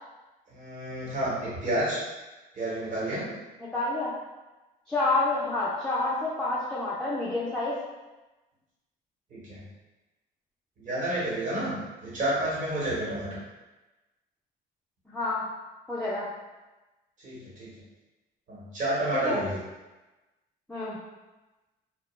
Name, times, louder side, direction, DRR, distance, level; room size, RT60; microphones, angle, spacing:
voice 1, 0.5-2.0 2.5-3.3 9.3-9.6 10.8-13.3 17.2-17.7 18.5-19.5, right 1 dB, 50° right, -7 dB, 1.1 m, -30 dB
voice 2, 3.7-4.1 4.9-7.8 15.1-15.4 15.9-16.3 19.1-19.4 20.7-21.0, left 2 dB, 5° left, -8 dB, 0.4 m, -28 dB
2.3 x 2.1 x 3.1 m, 1.1 s
cardioid pair, 110°, 17 cm